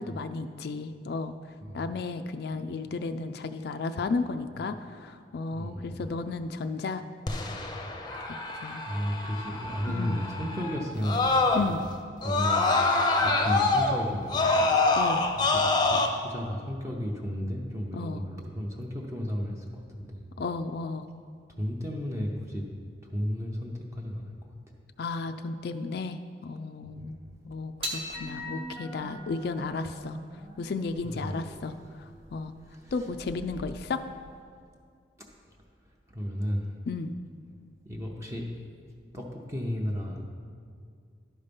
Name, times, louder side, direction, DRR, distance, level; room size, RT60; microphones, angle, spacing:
voice 1, 0.0-1.4 1.7-7.0 8.5-8.8 9.9-10.2 11.5-11.8 15.0-15.3 17.9-18.2 20.4-21.1 25.0-27.2 27.5-30.2 30.6-31.8 32.3-32.5 32.9-34.0 36.9-37.1, left 4 dB, 60° left, 8 dB, 0.3 m, -33 dB
voice 2, 5.5-6.0 8.8-11.7 12.2-12.8 13.2-14.7 15.5-20.2 21.5-22.7 23.1-24.2 26.9-27.1 31.0-31.4 32.6-32.9 36.1-36.7 37.8-38.5 39.1-40.2, equal, 15° right, -1 dB, 0.7 m, -33 dB
Screaming, 7.3-11.9 12.2-16.1, left 3 dB, 25° left, 0.6 m, -26 dB
sound 1, 27.8-34.4, equal, 30° right, 1.1 m, -42 dB
11.5 x 5.5 x 5.2 m, 2.2 s
head